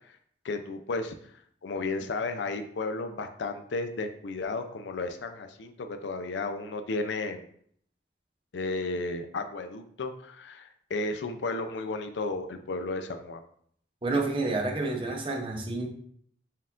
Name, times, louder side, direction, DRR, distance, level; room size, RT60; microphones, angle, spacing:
voice 1, 0.4-1.2 1.6-7.5 8.5-13.4, left 3 dB, 85° left, 7 dB, 0.5 m, -33 dB
voice 2, 14.0-15.9, right 2 dB, 30° right, 2 dB, 0.6 m, -29 dB
4.4 x 2.4 x 3.6 m, 0.63 s
head